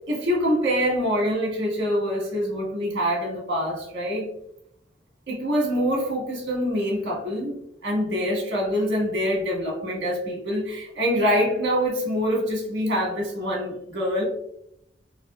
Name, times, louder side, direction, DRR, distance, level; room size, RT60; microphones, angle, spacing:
voice 1, 0.1-4.3 5.3-14.2, equal, 60° right, -3 dB, 1.5 m, -25 dB
4.3 x 2.5 x 2.3 m, 0.77 s
head